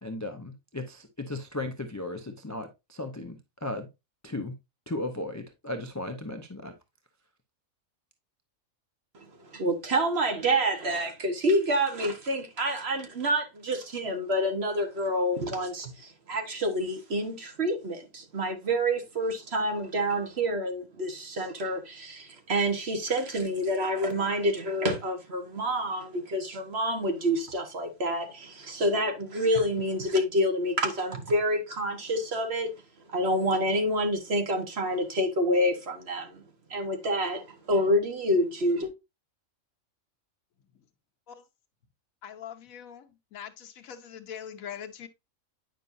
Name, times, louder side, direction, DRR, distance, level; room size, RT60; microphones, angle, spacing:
voice 1, 0.0-3.9 4.2-4.5 4.9-6.7, left 2 dB, 20° left, 0.5 m, -36 dB
voice 2, 9.4-32.7 33.1-36.4 36.7-38.9, equal, 50° right, 1.4 m, -28 dB
voice 3, 42.2-45.1, left 8 dB, 85° left, 1.3 m, -42 dB
9.1 x 5.4 x 2.6 m
omnidirectional pair, 1.4 m